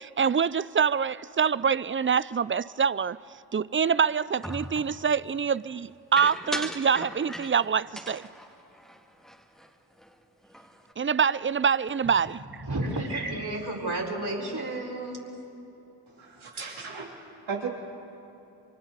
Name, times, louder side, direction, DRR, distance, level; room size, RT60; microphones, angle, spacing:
voice 1, 0.0-3.2 3.5-8.2 11.0-12.6, right 6 dB, 25° right, 0.4 m, -25 dB
sound 1, 4.4-5.0 6.2-7.7 8.0-9.7 10.0-10.1 10.4-10.9, equal, ahead, 2.2 m, -39 dB
voice 2, 12.6-15.3, right 2 dB, 50° right, 4.9 m, -31 dB
voice 3, 16.1-17.7, right 5 dB, 85° right, 3.4 m, -36 dB
29.0 x 25.0 x 4.1 m
cardioid pair, 40°, 47 cm